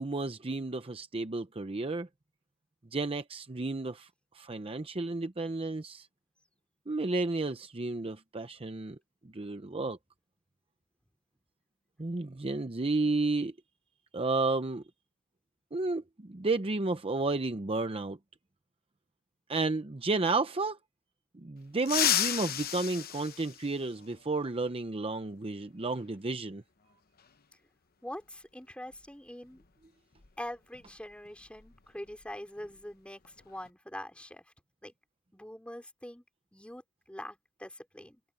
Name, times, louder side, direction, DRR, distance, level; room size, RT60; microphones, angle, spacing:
voice 1, 0.0-2.1 2.9-4.1 4.3-6.1 6.9-9.0 9.3-10.0 12.0-13.5 14.1-14.8 15.7-18.2 19.5-20.8 21.4-26.6, right 3 dB, 25° right, 0.7 m, -32 dB
sound 1, 21.8-24.2 25.9-26.0 27.2-27.3 28.9-29.1 29.4-29.6 30.1-32.3 32.6-32.8 33.2-33.7, left 11 dB, 45° left, 1.0 m, -33 dB
voice 2, 28.0-29.6 30.4-34.4 34.8-34.9 35.3-36.2 36.5-38.2, left 1 dB, 5° left, 3.6 m, -44 dB
open air
head